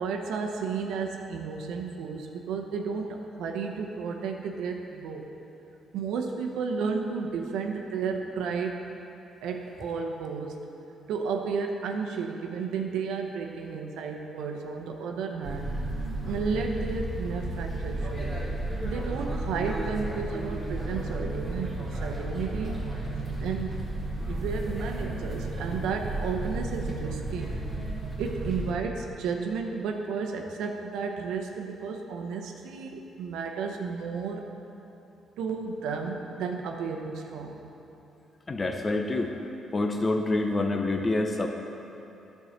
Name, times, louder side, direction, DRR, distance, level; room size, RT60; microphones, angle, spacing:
voice 1, 0.0-5.3 5.9-8.8 9.4-10.6 11.1-15.7 16.2-18.3 18.8-22.8 23.4-23.9 24.3-27.5 28.2-34.4 35.4-37.6, right 5 dB, 85° right, 2 dB, 0.8 m, -32 dB
sound 1, 15.4-28.7, right 2 dB, 5° left, 1.9 m, -33 dB
voice 2, 38.5-39.3 39.7-41.5, left 2 dB, 30° left, 4 dB, 0.6 m, -27 dB
10.5 x 4.6 x 6.4 m, 2.9 s
cardioid pair, 90°, 0 cm